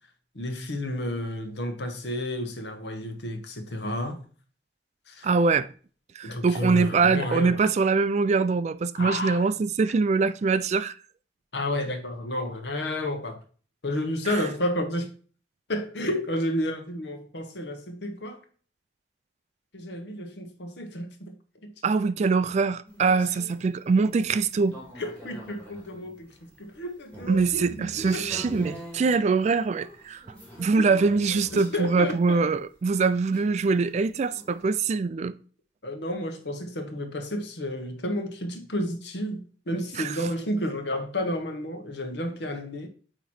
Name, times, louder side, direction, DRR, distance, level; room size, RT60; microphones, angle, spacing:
voice 1, 0.3-4.2 5.1-5.3 6.2-7.7 8.9-9.5 11.5-13.4 13.8-15.1 15.7-18.4 19.7-21.3 21.6-21.7 25.0-28.3 30.8-31.0 31.3-32.5 35.8-42.9, left 1 dB, 70° left, 1.1 m, -31 dB
voice 2, 5.2-5.7 6.2-11.0 14.3-14.4 21.8-24.8 27.3-30.2 30.6-35.3 39.9-40.2, right 4 dB, 40° right, 0.3 m, -23 dB
sound 1, 22.8-34.8, equal, 10° left, 2.0 m, -45 dB
9.0 x 3.0 x 4.2 m
head